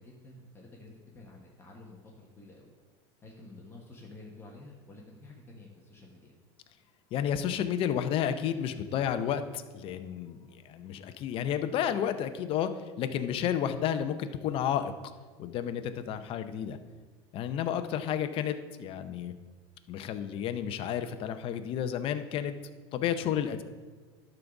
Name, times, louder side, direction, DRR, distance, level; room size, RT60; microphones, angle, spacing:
voice 1, 0.0-2.7 3.2-6.3, left 2 dB, 15° left, -2 dB, 1.2 m, -50 dB
voice 2, 7.1-12.7 13.0-14.9 15.4-16.8 17.3-19.3 19.9-22.5 22.9-23.6, left 9 dB, 40° left, 10 dB, 0.6 m, -31 dB
11.5 x 4.0 x 5.9 m, 1.4 s
supercardioid pair, 140°, 14 cm